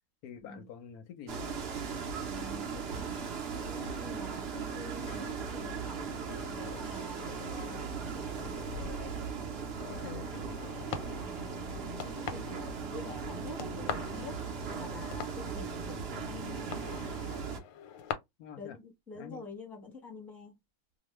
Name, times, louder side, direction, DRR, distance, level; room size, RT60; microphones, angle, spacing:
voice 1, 0.2-1.5 9.9-10.6 18.4-18.8 19.2-19.4, left 8 dB, 70° left, 0.9 m, -46 dB
sound 1, 1.3-17.6, right 5 dB, 70° right, 0.5 m, -38 dB
voice 2, 2.3-3.3 3.6-6.1 6.5-8.6 11.2-14.4 14.7-16.9 18.6-20.6, left 3 dB, ahead, 0.7 m, -47 dB
sound 2, 4.5-18.1, left 8 dB, 85° left, 1.3 m, -46 dB
2.9 x 2.2 x 3.0 m
omnidirectional pair, 2.0 m